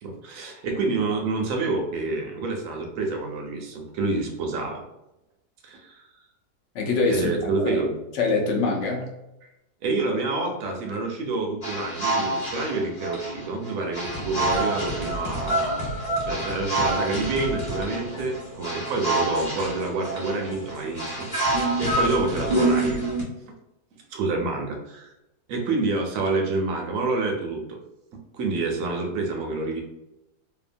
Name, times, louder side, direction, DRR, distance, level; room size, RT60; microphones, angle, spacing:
voice 1, 0.0-4.8 5.6-6.1 7.1-7.9 9.8-23.0 24.1-25.1 25.5-27.8 28.3-29.8, right 3 dB, 70° right, 2 dB, 0.9 m, -28 dB
voice 2, 6.7-7.8 8.1-9.2 14.3-14.4, left 3 dB, 65° left, 1 dB, 0.7 m, -25 dB
sound 1, 11.6-23.2, right 2 dB, 30° left, 1.1 m, -27 dB
2.8 x 2.3 x 2.5 m, 0.89 s
omnidirectional pair, 1.7 m